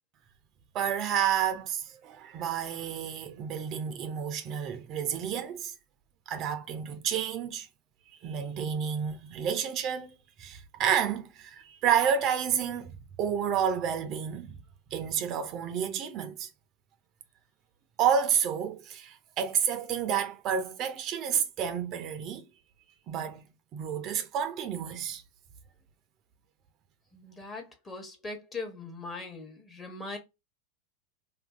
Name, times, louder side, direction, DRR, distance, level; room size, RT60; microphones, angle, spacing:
voice 1, 0.7-5.7 6.3-7.7 8.2-14.6 14.9-16.5 18.0-22.5 23.1-23.4 23.7-25.2, right 8 dB, 45° right, 0.5 m, -30 dB
voice 2, 27.1-30.2, left 3 dB, 20° left, 1.0 m, -40 dB
2.6 x 2.5 x 2.4 m
hypercardioid pair, 110°, 0 cm